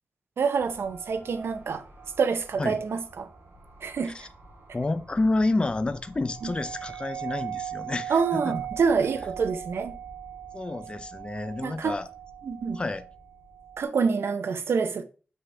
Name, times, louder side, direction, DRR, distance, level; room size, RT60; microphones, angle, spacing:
voice 1, 0.4-1.8 2.2-3.3 3.8-4.1 6.4-6.5 8.1-10.0 11.6-12.0 12.4-12.8 13.8-15.0, right 5 dB, 80° right, 0.6 m, -26 dB
sound 1, 0.6-13.8, right 9 dB, 65° right, 2.7 m, -41 dB
voice 2, 4.7-8.5 10.5-12.1 12.7-13.0, left 2 dB, 25° left, 0.5 m, -29 dB
5.7 x 5.5 x 3.2 m
wide cardioid pair, 145°, 4 cm